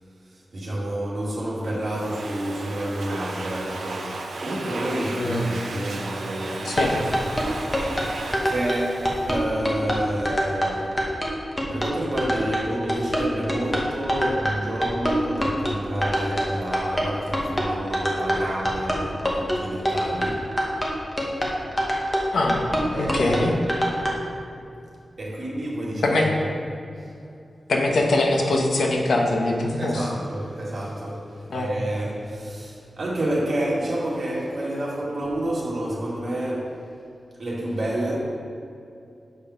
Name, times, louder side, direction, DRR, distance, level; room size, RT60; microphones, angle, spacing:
voice 1, 0.2-8.1 8.4-11.0 11.7-20.5 22.9-23.6 25.2-26.5 27.0-27.1 29.8-36.8 37.4-38.2, right 1 dB, 50° right, -5 dB, 2.0 m, -29 dB
Domestic sounds home sounds, 1.6-10.1, right 3 dB, 80° right, 0.7 m, -35 dB
voice 2, 6.6-7.0 22.3-23.5 26.0-26.3 27.7-30.0 31.5-31.7, left 2 dB, 90° left, 1 dB, 1.0 m, -23 dB
sound 1, 6.7-24.1, equal, 10° left, 1.0 m, -25 dB
6.9 x 5.3 x 5.6 m, 2.6 s
wide cardioid pair, 170°, 0 cm